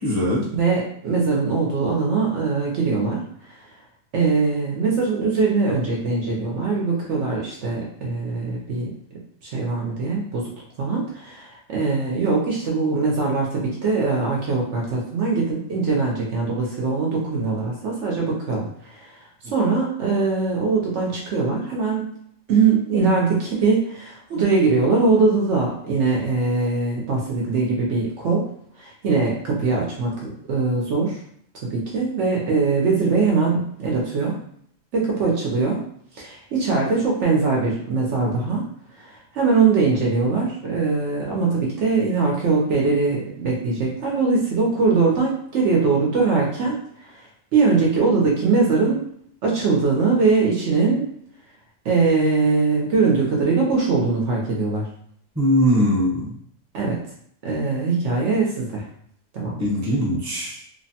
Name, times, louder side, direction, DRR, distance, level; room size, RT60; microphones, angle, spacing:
voice 1, 0.0-0.5 55.3-56.3 59.6-60.6, equal, 15° right, -6 dB, 0.7 m, -21 dB
voice 2, 0.5-3.7 4.1-8.9 9.4-10.5 10.8-22.0 22.5-28.5 28.8-31.2 31.6-34.4 34.9-35.8 36.1-38.6 38.9-49.0 49.4-51.1 51.8-54.9 56.7-57.0 57.4-58.9 59.3-59.6, right 4 dB, 65° right, -2 dB, 0.9 m, -22 dB
3.0 x 2.1 x 2.7 m, 0.66 s
omnidirectional pair, 1.4 m